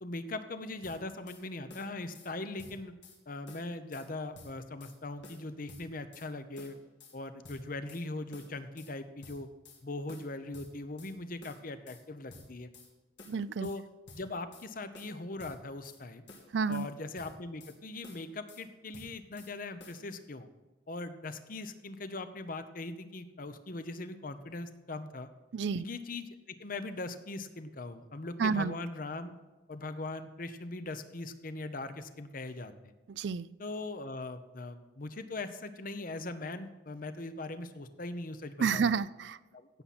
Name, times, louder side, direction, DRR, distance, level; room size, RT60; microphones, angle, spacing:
voice 1, 0.0-2.9 3.3-6.8 7.1-9.5 9.8-12.7 13.6-13.8 14.2-16.2 16.7-20.5 20.9-25.3 25.8-29.3 29.7-32.9 33.6-38.9 39.5-39.8, left 2 dB, 50° left, 10 dB, 0.9 m, -40 dB
sound 1, 0.8-1.4 1.7-2.3 2.6-3.2 3.5-4.1 4.3-5.0 5.2-6.3 6.6-7.2 7.4-8.0 8.3-8.9 9.2-9.8 10.1-11.1 11.4-12.0 12.3-12.9 13.2-13.8 14.1-14.7 14.9-16.0 16.3-16.9 17.2-17.8 18.0-18.6 18.9-19.5 19.8-20.0, left 3 dB, 75° left, 3.0 m, -52 dB
voice 2, 13.3-13.7 16.5-16.9 25.5-25.8 28.4-28.7 33.2-33.5 38.6-39.4, right 5 dB, 70° right, 18 dB, 0.4 m, -30 dB
16.5 x 7.3 x 4.3 m, 1.2 s
head